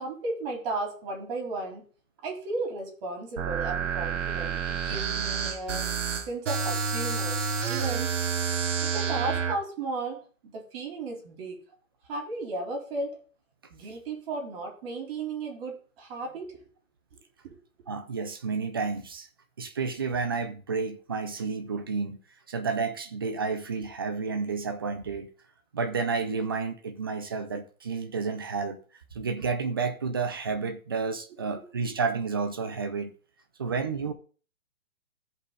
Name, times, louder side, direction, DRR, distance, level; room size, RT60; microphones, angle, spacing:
voice 1, 0.0-1.9 2.2-5.9 6.3-8.1 8.8-11.6 12.1-13.2 13.7-16.6 17.1-17.6 31.5-31.9, right 3 dB, 45° right, 4.0 m, -35 dB
sound 1, 3.4-9.6, right 6 dB, 60° right, 1.5 m, -29 dB
voice 2, 17.9-19.3 19.6-22.2 22.5-25.3 25.7-28.8 29.1-33.1 33.6-34.1, right 5 dB, 20° right, 0.4 m, -30 dB
14.5 x 5.3 x 4.1 m
hypercardioid pair, 155°, 41 cm